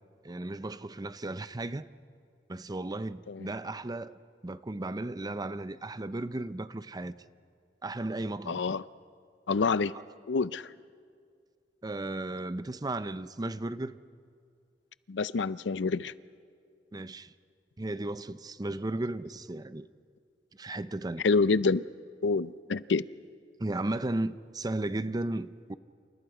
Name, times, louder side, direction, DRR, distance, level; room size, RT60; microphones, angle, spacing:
voice 1, 0.2-1.9 2.5-7.1 7.8-8.6 11.8-14.0 16.9-17.3 17.8-19.9 20.5-21.2 23.6-25.7, right 2 dB, 20° right, 0.6 m, -35 dB
voice 2, 8.5-8.8 9.5-9.9 10.3-10.7 15.1-16.1 21.2-21.8 22.2-23.1, left 4 dB, 80° left, 0.5 m, -27 dB
29.0 x 28.5 x 5.0 m
head